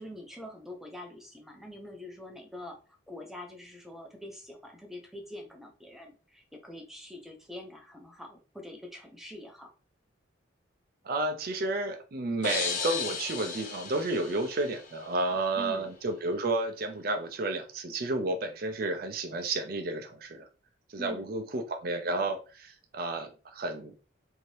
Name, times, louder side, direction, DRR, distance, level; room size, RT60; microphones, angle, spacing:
voice 1, 0.0-2.8 3.1-9.7 15.6-15.9 21.0-21.3, left 1 dB, ahead, 0.5 m, -44 dB
voice 2, 11.0-20.5 20.9-23.9, right 2 dB, 50° right, 0.5 m, -31 dB
sound 1, 12.4-15.2, left 4 dB, 40° left, 0.6 m, -35 dB
2.7 x 2.7 x 3.1 m
head